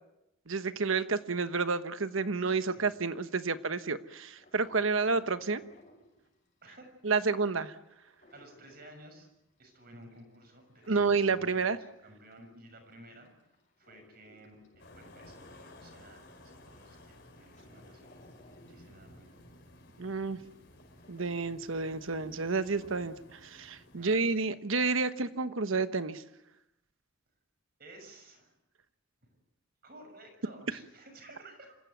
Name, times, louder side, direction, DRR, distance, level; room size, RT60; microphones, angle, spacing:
voice 1, 0.5-5.6 7.0-7.7 10.9-11.8 20.0-20.4 21.1-26.2, right 4 dB, 85° right, 11 dB, 1.2 m, -30 dB
voice 2, 2.4-2.9 6.6-7.4 8.3-9.3 9.6-13.3 13.8-18.2 18.7-19.4 24.0-24.3 27.8-28.5 29.8-31.8, right 1 dB, 50° right, 5 dB, 6.3 m, -54 dB
sound 1, 4.2-6.9 7.2-9.6 10.0-12.6 13.0-16.1 16.7-16.8 17.1-22.3 22.7-22.8, left 1 dB, 40° left, 6.7 m, -60 dB
sound 2, 14.8-24.4, left 1 dB, 55° left, 4.9 m, -55 dB
26.5 x 15.5 x 9.4 m, 0.90 s
head